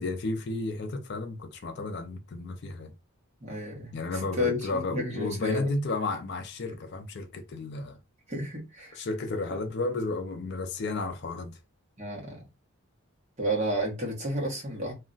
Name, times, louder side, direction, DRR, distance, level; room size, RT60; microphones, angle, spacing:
voice 1, 0.0-2.9 3.9-8.0 9.0-11.6, left 3 dB, 50° left, 0.4 m, -32 dB
voice 2, 3.4-5.7 8.3-9.0 12.0-12.4 13.4-14.9, equal, 30° right, 0.9 m, -31 dB
2.3 x 2.1 x 3.8 m
head